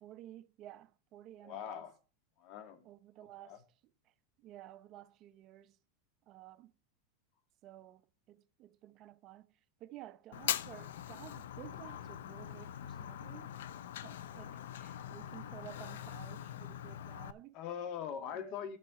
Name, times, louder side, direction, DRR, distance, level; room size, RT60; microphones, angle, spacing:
voice 1, 0.0-1.8 2.8-3.6 4.4-5.8 6.3-6.7 7.6-9.5 9.8-13.6 14.0-17.5 18.3-18.6, right 13 dB, 40° right, 0.7 m, -53 dB
voice 2, 1.4-1.9 2.4-2.8 3.4-3.6 17.5-18.8, left 8 dB, 50° left, 2.0 m, -41 dB
Fire, 10.3-17.3, left 11 dB, 80° left, 0.6 m, -42 dB
11.0 x 5.9 x 6.3 m
supercardioid pair, 130°, 0 cm